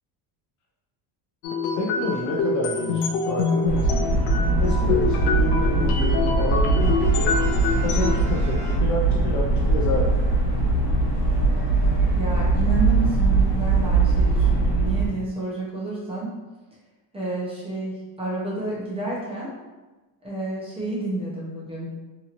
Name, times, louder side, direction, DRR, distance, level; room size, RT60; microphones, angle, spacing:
sound 1, 1.4-8.2, left 4 dB, 90° left, 0.5 m, -26 dB
voice 1, 1.8-4.1 4.6-7.3 7.8-10.2, left 2 dB, 40° left, -3 dB, 0.4 m, -29 dB
sound 2, 3.6-15.1, right 3 dB, 70° left, 1.1 m, -21 dB
Brass instrument, 6.8-9.4, right 1 dB, 55° right, 0.7 m, -41 dB
voice 2, 12.1-16.3 17.1-19.5 20.2-21.9, right 2 dB, 15° right, -7 dB, 0.6 m, -30 dB
2.8 x 2.8 x 2.4 m, 1.2 s
cardioid pair, 160°, 46 cm